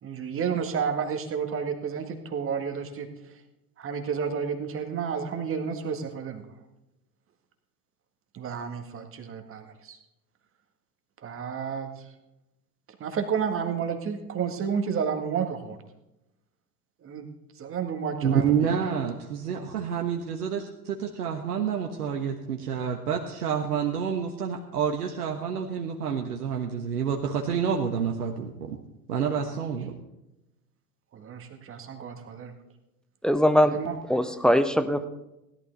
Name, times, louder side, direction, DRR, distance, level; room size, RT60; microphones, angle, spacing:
voice 1, 0.0-3.1 3.8-6.4 8.3-10.0 11.2-12.1 13.0-15.8 17.0-17.3 17.6-18.8 27.9-28.0 29.4-29.5 31.1-32.5 33.7-34.0, right 6 dB, 25° right, 6 dB, 1.8 m, -31 dB
voice 2, 18.2-28.8 29.1-29.9, right 7 dB, 70° right, 3 dB, 1.3 m, -28 dB
voice 3, 33.2-33.8 34.1-35.1, equal, ahead, 10 dB, 0.4 m, -21 dB
16.5 x 11.5 x 4.0 m, 0.92 s
figure-of-eight pair, 80°, 47 cm